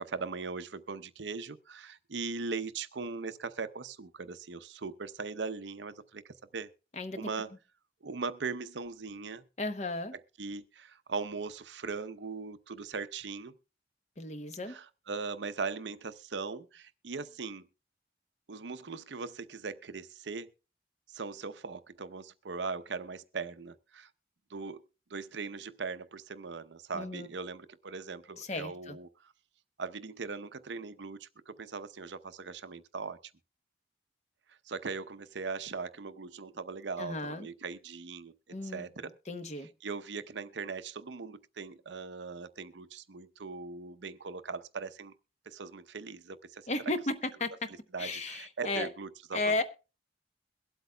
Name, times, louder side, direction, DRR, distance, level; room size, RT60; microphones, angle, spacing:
voice 1, 0.0-6.7 7.1-7.5 8.0-9.4 10.4-13.5 14.7-17.7 18.5-20.5 21.1-24.1 24.5-24.8 25.1-29.1 29.8-33.2 34.7-38.3 38.7-39.1 39.8-45.1 45.5-46.7 47.9-49.6, right 4 dB, 85° right, 0.7 m, -39 dB
voice 2, 6.9-7.3 9.6-10.1 14.2-14.7 26.9-27.3 28.4-29.0 37.0-37.5 38.5-38.9 39.3-39.7 46.7-47.7 48.0-48.9 49.3-49.6, left 2 dB, 40° left, 0.9 m, -34 dB
22.5 x 8.1 x 2.2 m
head